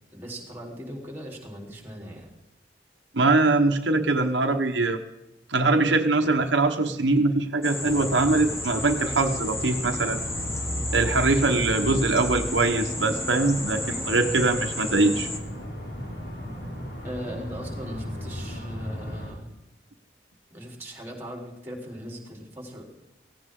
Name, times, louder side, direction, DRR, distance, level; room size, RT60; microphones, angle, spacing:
voice 1, 0.1-2.3 17.0-19.5 20.5-22.8, equal, 10° right, 0 dB, 3.8 m, -39 dB
voice 2, 3.1-5.0 5.5-10.2 10.9-15.3, right 3 dB, 90° right, 5 dB, 1.2 m, -22 dB
sound 1, 7.6-15.4, left 1 dB, 15° left, 1.4 m, -33 dB
sound 2, 7.8-19.3, equal, 80° left, 5.6 m, -35 dB
17.0 x 16.5 x 3.8 m, 0.94 s
head